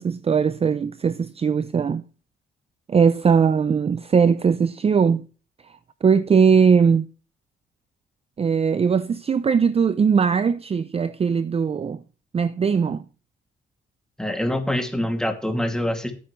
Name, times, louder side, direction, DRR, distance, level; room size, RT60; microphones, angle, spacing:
voice 1, 0.0-2.0 2.9-5.2 6.0-7.0 8.4-12.0 12.3-13.0, right 6 dB, 30° right, 0.5 m, -20 dB
voice 2, 14.2-16.1, left 1 dB, 5° left, 2.4 m, -25 dB
14.0 x 9.0 x 3.2 m
cardioid pair, 90°, 20 cm